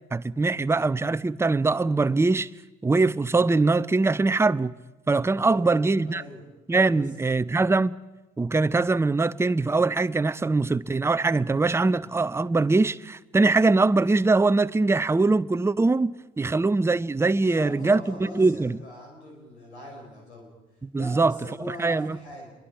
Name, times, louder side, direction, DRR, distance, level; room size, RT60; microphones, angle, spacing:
voice 1, 0.1-2.5 2.8-4.7 5.1-6.2 6.7-8.0 8.4-18.0 18.3-18.8 20.8-21.3 21.7-22.2, right 3 dB, 10° right, 0.6 m, -22 dB
voice 2, 5.4-6.4 6.9-7.1 17.4-20.5 20.9-22.5, left 1 dB, 85° left, 5.6 m, -41 dB
27.5 x 22.5 x 4.8 m
figure-of-eight pair, 55°, 32 cm